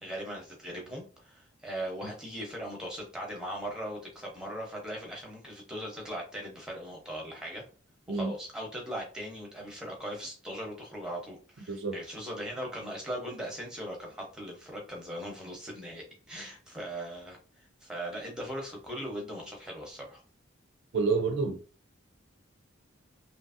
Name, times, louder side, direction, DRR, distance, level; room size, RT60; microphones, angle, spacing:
voice 1, 0.0-7.6 8.1-20.2, equal, 5° right, 0.8 m, -39 dB
voice 2, 11.7-12.0 20.9-21.6, right 4 dB, 65° right, 0.4 m, -29 dB
2.9 x 2.5 x 2.5 m
head